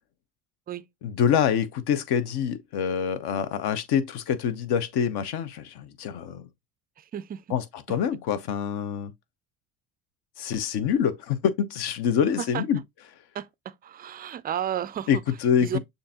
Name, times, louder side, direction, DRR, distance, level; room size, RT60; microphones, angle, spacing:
voice 1, 1.0-6.5 7.5-9.1 10.4-12.8 15.1-15.7, left 8 dB, 60° left, 1.0 m, -26 dB
voice 2, 7.0-7.4 12.4-12.6 13.3-15.2 15.6-15.8, right 10 dB, 25° right, 0.3 m, -33 dB
6.6 x 2.7 x 2.8 m
supercardioid pair, 80°, 44 cm